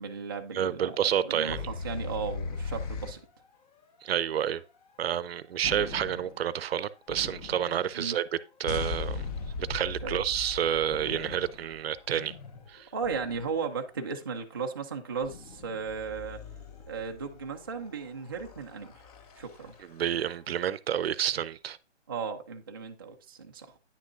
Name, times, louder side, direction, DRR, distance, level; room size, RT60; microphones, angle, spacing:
voice 1, 0.0-3.2 8.0-8.2 10.0-10.2 12.9-16.4 16.9-19.0 19.4-19.7 22.1-23.8, right 5 dB, 20° right, 0.3 m, -36 dB
voice 2, 0.5-1.6 4.0-4.6 5.0-8.2 8.6-9.2 9.6-12.3 12.7-12.9 19.8-21.8, right 9 dB, 55° right, 0.6 m, -29 dB
sound 1, 1.5-3.2 5.6-6.5 7.1-7.9 8.7-13.8 15.2-20.1, left 4 dB, 30° left, 0.9 m, -39 dB
9.7 x 6.3 x 2.4 m
hypercardioid pair, 145°, 35 cm